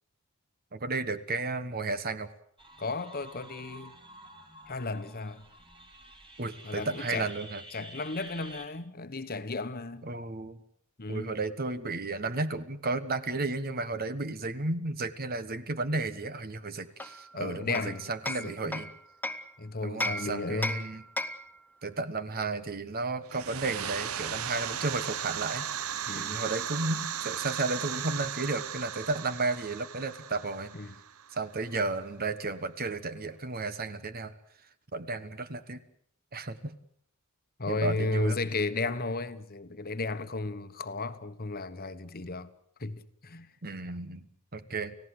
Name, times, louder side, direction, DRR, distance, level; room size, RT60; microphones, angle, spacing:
voice 1, 0.7-2.3 6.4-7.6 10.0-10.6 11.1-18.9 19.8-21.0 21.8-25.7 26.1-30.7 31.3-34.3 34.9-35.8 36.3-36.7 37.7-38.4 43.6-44.2 44.5-44.9, right 3 dB, 45° right, 1.3 m, -33 dB
sound 1, 2.6-8.7, right 1 dB, 25° right, 4.1 m, -50 dB
voice 2, 2.8-3.9 4.7-5.4 6.6-7.3 7.7-10.1 11.0-11.3 17.3-18.1 18.4-18.8 19.6-20.8 26.1-26.4 30.7-30.9 37.6-42.5 42.8-43.5, left 3 dB, 45° left, 1.3 m, -34 dB
Hammer, 17.0-19.5 20.0-21.6, left 1 dB, 10° left, 0.9 m, -35 dB
sound 2, 23.3-31.8, right 9 dB, 70° right, 0.9 m, -36 dB
30.0 x 16.0 x 7.9 m
head